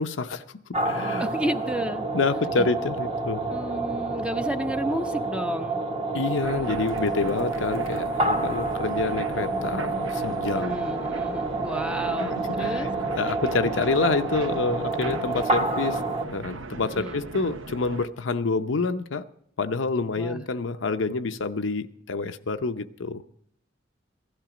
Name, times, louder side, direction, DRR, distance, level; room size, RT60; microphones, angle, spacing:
voice 1, 0.0-1.3 2.1-3.5 6.1-10.9 12.2-12.9 13.2-19.2 19.6-23.2, left 3 dB, 70° left, 0.7 m, -28 dB
sound 1, 0.7-16.2, right 2 dB, 35° right, 1.5 m, -28 dB
voice 2, 1.2-2.1 2.6-2.7 3.5-5.8 10.6-12.9 16.9-17.2 20.2-20.4, right 1 dB, 5° right, 0.7 m, -32 dB
sound 2, 6.4-18.1, right 3 dB, 80° right, 0.9 m, -38 dB
16.0 x 12.0 x 5.0 m
head